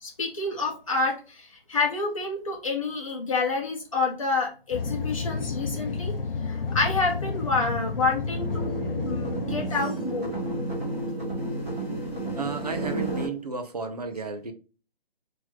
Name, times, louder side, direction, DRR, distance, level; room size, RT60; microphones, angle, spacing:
voice 1, 0.0-6.1 6.4-8.7 9.0-10.3, left 3 dB, 35° left, 1.1 m, -28 dB
sound 1, 4.7-9.8, left 4 dB, 65° left, 0.7 m, -31 dB
sound 2, 8.2-13.3, right 2 dB, 15° right, 1.3 m, -31 dB
voice 2, 12.3-14.5, right 4 dB, 40° right, 0.6 m, -33 dB
3.1 x 2.9 x 3.7 m
hypercardioid pair, 175°, 30 cm